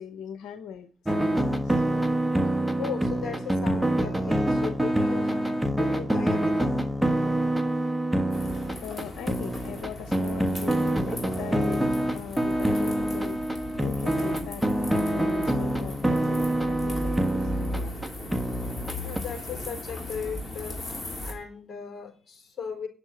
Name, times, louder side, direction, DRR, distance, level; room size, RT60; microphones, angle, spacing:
voice 1, 0.0-1.8 8.4-8.5 8.8-17.9, left 8 dB, 85° left, 0.8 m, -40 dB
sound 1, 1.0-19.2, right 1 dB, 5° right, 1.3 m, -26 dB
voice 2, 2.8-6.8 8.4-8.6 19.0-22.9, left 7 dB, 45° left, 4.0 m, -37 dB
sound 2, 8.3-21.3, left 1 dB, 15° left, 3.0 m, -37 dB
9.8 x 6.1 x 7.8 m
cardioid pair, 90°, 0 cm